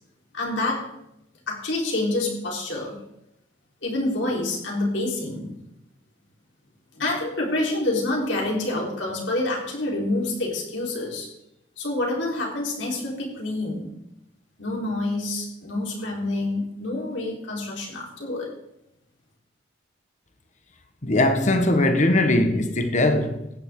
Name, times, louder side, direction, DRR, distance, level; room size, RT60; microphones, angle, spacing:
voice 1, 0.3-0.9 1.5-2.9 3.8-5.6 6.9-11.3 11.8-13.9 14.6-18.5, left 2 dB, 75° left, 4.1 m, -27 dB
voice 2, 21.0-23.5, left 1 dB, 40° left, 1.3 m, -20 dB
15.5 x 10.0 x 3.8 m
head